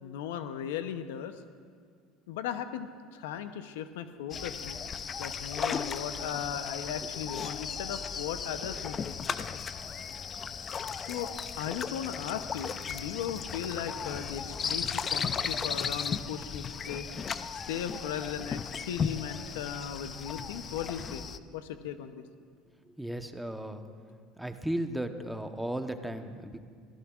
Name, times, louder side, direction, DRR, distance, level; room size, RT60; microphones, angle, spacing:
voice 1, 0.0-1.3 2.3-4.8 5.2-9.2 11.0-17.1 17.7-21.2 21.5-22.2, left 9 dB, 80° left, 10 dB, 0.7 m, -37 dB
sound 1, 4.3-21.4, left 6 dB, 35° left, 0.5 m, -36 dB
voice 2, 23.0-24.0 24.4-26.6, right 1 dB, 5° right, 7 dB, 1.0 m, -35 dB
22.0 x 15.5 x 2.4 m, 2.1 s
hypercardioid pair, 85°, 0 cm